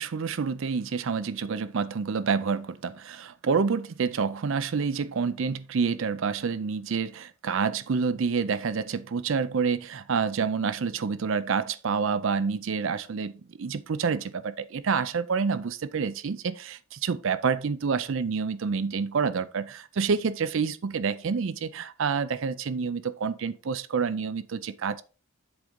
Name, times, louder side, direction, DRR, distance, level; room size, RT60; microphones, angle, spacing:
voice 1, 0.0-13.3 13.6-25.0, right 5 dB, 60° right, 0.4 m, -28 dB
7.9 x 3.7 x 5.2 m
head